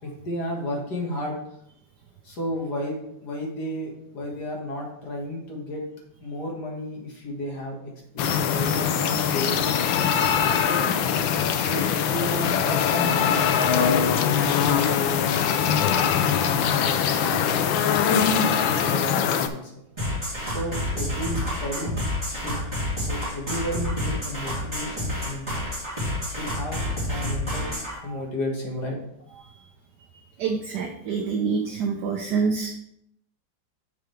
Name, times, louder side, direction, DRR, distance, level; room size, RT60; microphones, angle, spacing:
voice 1, 0.0-1.4 2.2-5.8 6.2-10.0 10.6-10.9 11.6-14.9 15.7-18.0 18.2-19.8 20.4-22.0 22.3-22.6 23.0-25.5 25.9-27.7 28.0-29.0, equal, 55° left, -1 dB, 2.2 m, -33 dB
sound 1, 8.2-19.5, left 8 dB, 85° left, 1.4 m, -22 dB
sound 2, 20.0-28.0, left 1 dB, 15° right, 2.9 m, -29 dB
voice 2, 30.4-32.7, right 5 dB, 65° right, 3 dB, 1.2 m, -26 dB
6.9 x 5.1 x 4.5 m, 0.76 s
omnidirectional pair, 2.1 m